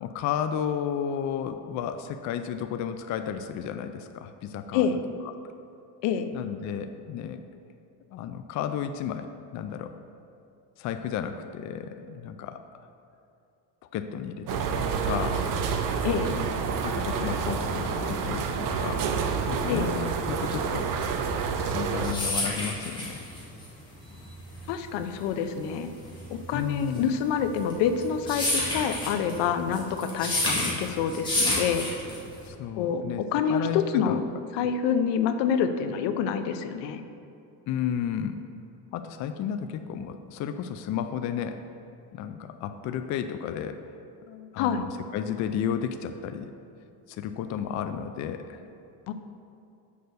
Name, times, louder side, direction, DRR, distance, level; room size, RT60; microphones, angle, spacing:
voice 1, 0.0-4.9 6.3-7.4 8.1-10.0 10.8-12.6 13.9-14.7 15.0-15.6 16.3-16.5 16.8-19.0 19.5-20.9 21.6-23.2 26.5-27.1 32.4-34.2 37.7-38.4 38.9-41.6 42.1-43.8 44.3-46.5 47.1-48.6, left 8 dB, 45° left, 8 dB, 0.4 m, -33 dB
sound 1, 14.5-22.1, right 5 dB, 50° right, 0.7 m, -28 dB
voice 2, 16.0-16.4 19.7-19.9 24.7-25.9 26.3-31.9 32.7-34.2 34.5-37.0 44.6-44.8 49.1-49.2, left 7 dB, 75° left, 9 dB, 0.7 m, -27 dB
sound 2, 21.7-32.5, left 1 dB, 10° left, 2.1 m, -30 dB
6.7 x 5.3 x 6.7 m, 2.6 s
cardioid pair, 135°, 42 cm